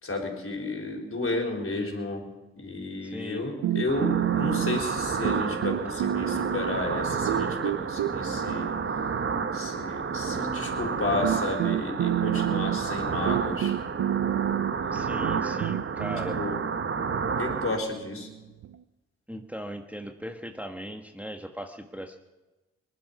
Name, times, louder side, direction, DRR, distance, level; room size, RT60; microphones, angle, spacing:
voice 1, 0.0-2.2 2.6-8.7 9.5-13.7 14.6-15.1 16.4-16.6 17.4-18.3, left 2 dB, 45° left, 0 dB, 4.3 m, -32 dB
voice 2, 3.0-3.4 14.9-16.4 19.3-22.2, equal, 5° right, 4 dB, 1.3 m, -38 dB
sound 1, 3.6-5.0 5.2-6.9 7.3-9.7 10.7-10.8 11.2-18.8, right 12 dB, 75° right, 0.6 m, -30 dB
sound 2, 3.9-17.8, right 5 dB, 40° right, 1.0 m, -30 dB
19.5 x 11.5 x 5.8 m, 1.1 s
supercardioid pair, 45°, 31 cm